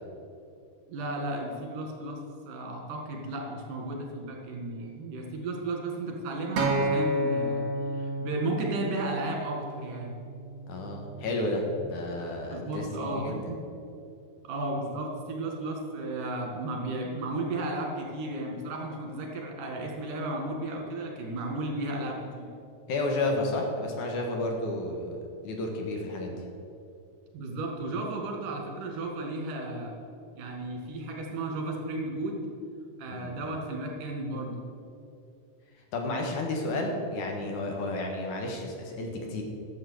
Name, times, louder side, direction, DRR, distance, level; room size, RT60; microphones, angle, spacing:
voice 1, 0.9-2.2 2.5-7.7 7.9-10.2 12.5-13.6 14.4-22.5 27.3-29.9 30.4-32.4 33.0-34.6, right 2 dB, 85° right, 0 dB, 3.4 m, -34 dB
Acoustic guitar, 6.6-10.8 11.7-11.8, right 1 dB, 60° right, 2.3 m, -31 dB
voice 2, 10.7-13.4 22.9-25.2 25.4-26.3 33.2-33.3 35.9-39.4, left 2 dB, 75° left, 1 dB, 2.8 m, -31 dB
12.5 x 7.6 x 6.4 m, 2.5 s
omnidirectional pair, 3.6 m